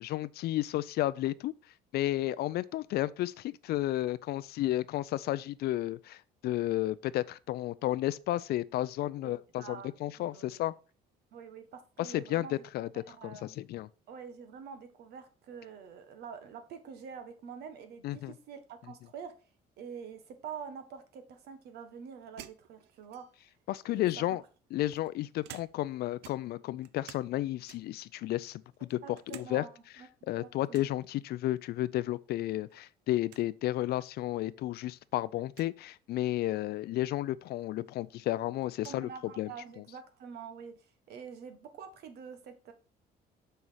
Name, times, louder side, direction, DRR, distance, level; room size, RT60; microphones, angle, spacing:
voice 1, 0.0-1.5 1.9-10.7 12.0-13.9 18.0-18.3 23.7-24.4 24.7-29.0 29.3-29.6 30.3-39.5 39.8-39.9, left 15 dB, 70° left, 0.5 m, -32 dB
voice 2, 9.2-10.7 11.3-12.6 12.9-13.6 14.1-19.3 19.8-23.3 23.9-24.3 29.0-30.1 30.4-30.8 38.8-42.7, right 6 dB, 75° right, 1.5 m, -46 dB
sound 1, 22.4-23.5 24.3-26.0 26.2-27.3 27.7-28.1 28.5-29.5 29.8-29.9 30.7-31.0 32.4-32.7 33.0-33.1 33.3-33.5 34.3-34.4 35.5-35.7 37.4-37.5 37.8-39.0, right 12 dB, 90° right, 0.6 m, -53 dB
6.7 x 5.6 x 4.7 m
cardioid pair, 110°, 17 cm